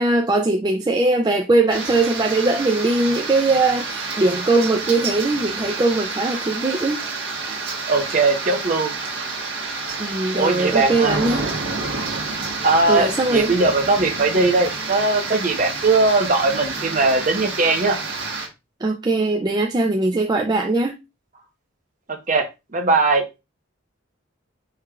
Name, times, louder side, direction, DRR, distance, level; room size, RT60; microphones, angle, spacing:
voice 1, 0.0-7.0 10.0-11.5 12.9-13.5 18.8-20.9, right 2 dB, 20° right, 3 dB, 0.4 m, -20 dB
sound 1, 1.7-18.5, right 3 dB, 60° right, 1.5 m, -29 dB
voice 2, 7.9-8.9 10.3-11.2 12.6-18.0 22.3-23.2, right 3 dB, 40° right, 4 dB, 0.9 m, -19 dB
4.8 x 4.5 x 2.3 m, 0.25 s
head